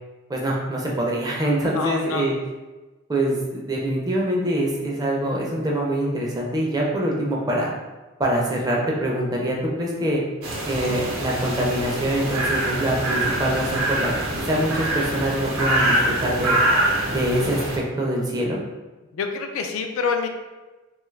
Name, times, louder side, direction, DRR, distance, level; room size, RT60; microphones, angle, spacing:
voice 1, 0.3-2.3 3.1-7.7 8.2-10.2 10.7-14.1 14.4-16.6 17.1-18.6, right 1 dB, 20° right, -3 dB, 0.4 m, -24 dB
voice 2, 1.8-2.3 19.1-20.3, left 5 dB, 75° left, 5 dB, 0.3 m, -26 dB
sound 1, 10.4-17.8, right 1 dB, 90° right, 0.7 m, -24 dB
2.7 x 2.3 x 3.1 m, 1.2 s
head